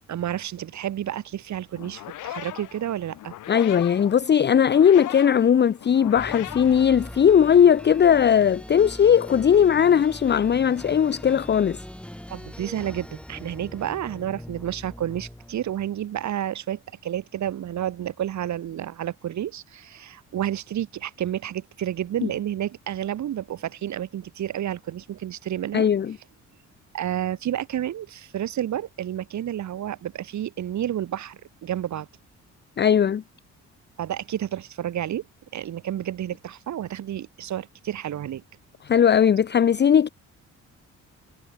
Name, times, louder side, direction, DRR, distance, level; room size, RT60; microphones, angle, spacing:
voice 1, 0.1-3.3 12.3-25.9 26.9-32.1 34.0-35.2 35.5-38.4, right 11 dB, 70° right, 3.2 m, -30 dB
sound 1, 1.7-7.6, left 14 dB, 85° left, 5.5 m, -39 dB
voice 2, 3.5-11.8 25.7-26.2 32.8-33.2 38.8-40.1, left 8 dB, 35° left, 0.7 m, -18 dB
sound 2, 6.1-16.0, left 1 dB, 5° left, 3.4 m, -41 dB
cardioid pair, 90°, 30 cm